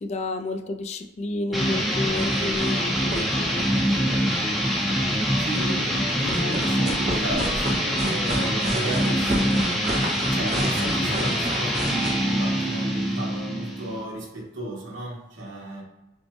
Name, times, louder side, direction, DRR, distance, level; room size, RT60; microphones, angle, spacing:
voice 1, 0.0-3.7, left 2 dB, 35° left, 6 dB, 0.3 m, -31 dB
sound 1, 1.5-14.0, equal, ahead, 0.6 m, -24 dB
sound 2, 2.0-2.8 3.1-3.2 3.5-4.9 6.0-12.1, right 1 dB, 35° right, 0.7 m, -32 dB
voice 2, 5.4-9.6 10.1-15.8, right 1 dB, 85° right, -2 dB, 1.2 m, -34 dB
5.2 x 2.2 x 3.1 m, 0.99 s
head